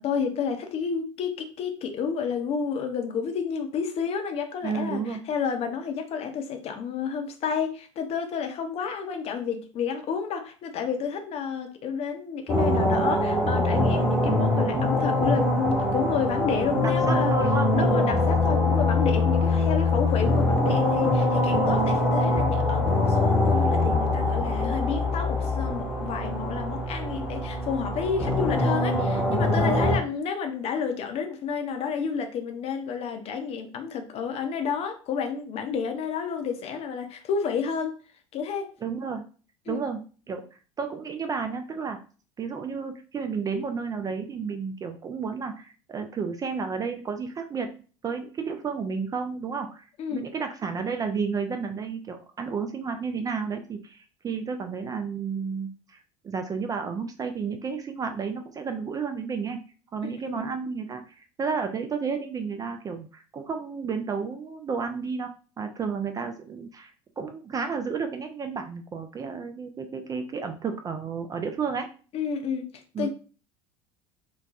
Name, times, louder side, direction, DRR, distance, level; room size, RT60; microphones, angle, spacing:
voice 1, 0.0-17.4 17.7-38.0 38.3-38.7 39.7-39.8 50.0-50.3 60.0-60.4 72.1-72.7 73.0-73.1, left 6 dB, 40° left, 5 dB, 0.6 m, -30 dB
voice 2, 4.6-5.3 16.8-18.3 29.6-29.9 38.8-39.2 39.7-40.0 40.3-40.4 40.8-42.0 42.4-47.7 48.0-49.8 50.1-59.6 59.9-71.9 72.9-73.1, right 5 dB, 20° right, 6 dB, 0.4 m, -32 dB
sound 1, 12.5-30.0, left 2 dB, 5° right, 1.0 m, -23 dB
4.0 x 2.2 x 2.4 m, 0.37 s
figure-of-eight pair, 70°, 16 cm